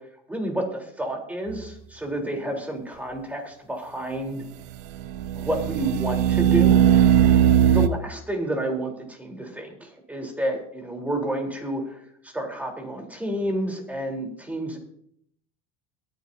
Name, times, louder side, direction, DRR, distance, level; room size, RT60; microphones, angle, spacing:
voice 1, 0.3-4.4 5.3-6.8 7.3-7.4 7.7-14.8, right 1 dB, 10° right, 1 dB, 3.8 m, -30 dB
sound 1, 1.5-1.6 4.9-7.9, right 10 dB, 70° right, 0.8 m, -18 dB
22.5 x 9.4 x 2.8 m, 0.67 s
supercardioid pair, 100°, 19 cm